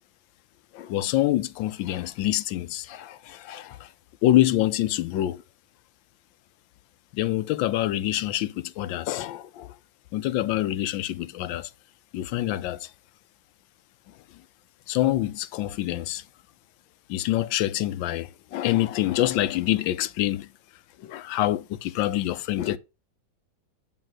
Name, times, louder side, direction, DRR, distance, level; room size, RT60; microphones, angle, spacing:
voice 1, 0.7-3.9 4.2-5.4 7.1-9.7 10.1-11.7 12.1-12.9 14.9-16.2 17.1-20.5 21.0-22.8, left 14 dB, 80° left, 1.3 m, -26 dB
9.1 x 3.1 x 6.0 m
omnidirectional pair, 2.1 m